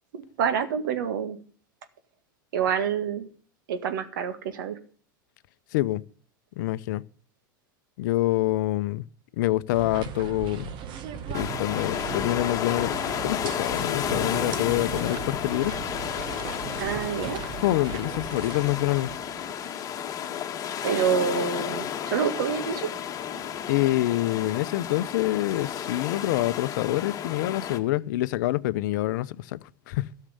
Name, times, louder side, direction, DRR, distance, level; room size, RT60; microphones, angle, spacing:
voice 1, 0.1-1.4 2.5-3.3 3.7-4.8 16.8-17.4 20.8-22.9, right 7 dB, 75° right, 1.9 m, -27 dB
voice 2, 5.7-6.0 6.6-7.0 8.0-9.1 9.3-10.8 11.3-12.9 13.2-15.7 17.6-19.1 23.7-29.6 29.9-30.1, left 16 dB, 65° left, 0.6 m, -26 dB
sound 1, 9.7-19.6, right 8 dB, 45° right, 1.5 m, -38 dB
sound 2, 11.3-27.8, left 9 dB, 30° left, 1.7 m, -32 dB
13.5 x 6.6 x 8.3 m
hypercardioid pair, 100°, 11 cm